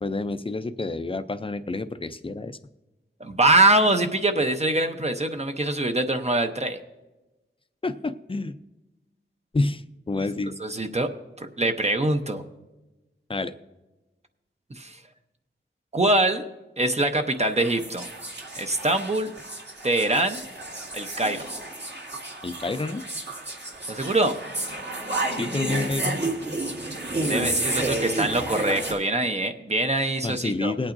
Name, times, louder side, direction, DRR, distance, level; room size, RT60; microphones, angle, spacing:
voice 1, 0.0-2.6 7.8-8.6 9.5-10.6 13.3-13.5 22.4-23.0 25.3-26.2 30.2-30.9, left 2 dB, 25° left, 11 dB, 0.5 m, -29 dB
voice 2, 3.2-6.8 10.1-10.2 10.6-11.1 11.4-12.4 14.7-15.0 15.9-16.5 16.8-18.1 18.5-19.3 19.8-20.4 20.9-21.5 23.9-24.3 27.3-30.7, right 2 dB, 30° right, 6 dB, 0.8 m, -23 dB
sound 1, 17.2-28.9, right 1 dB, 55° right, 2.1 m, -31 dB
21.0 x 8.6 x 2.6 m, 1.1 s
wide cardioid pair, 75°, 21 cm